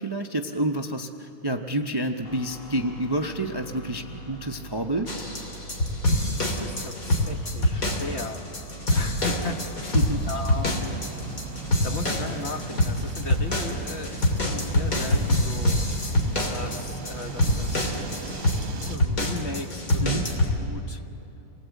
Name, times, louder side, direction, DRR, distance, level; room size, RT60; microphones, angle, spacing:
voice 1, 0.0-5.1 9.9-10.3 20.0-20.2, right 1 dB, 25° right, 4 dB, 0.6 m, -28 dB
voice 2, 1.5-1.8 6.4-9.9 10.3-11.0 11.8-15.8 16.5-17.9 18.9-20.2 20.6-21.0, left 2 dB, 45° left, 5 dB, 1.4 m, -36 dB
sound 1, 2.2-12.4, right 2 dB, 85° left, 2.8 m, -44 dB
sound 2, 5.1-20.6, left 1 dB, 60° left, 3.2 m, -25 dB
sound 3, 10.2-19.0, right 4 dB, 60° right, 1.6 m, -38 dB
28.0 x 19.5 x 8.2 m, 2.9 s
omnidirectional pair, 1.6 m